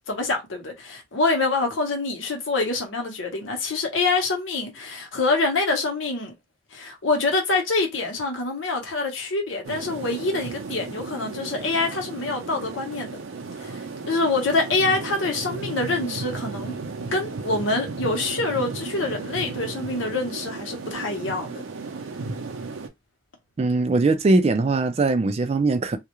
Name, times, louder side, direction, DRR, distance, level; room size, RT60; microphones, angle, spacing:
voice 1, 0.1-6.3 6.7-13.2 13.6-13.8 14.1-16.8 17.1-21.6, left 3 dB, 80° left, 0.9 m, -25 dB
sound 1, 9.6-22.9, right 3 dB, 90° right, 0.5 m, -34 dB
voice 2, 23.6-26.0, right 3 dB, 35° right, 0.3 m, -21 dB
2.3 x 2.1 x 2.9 m
head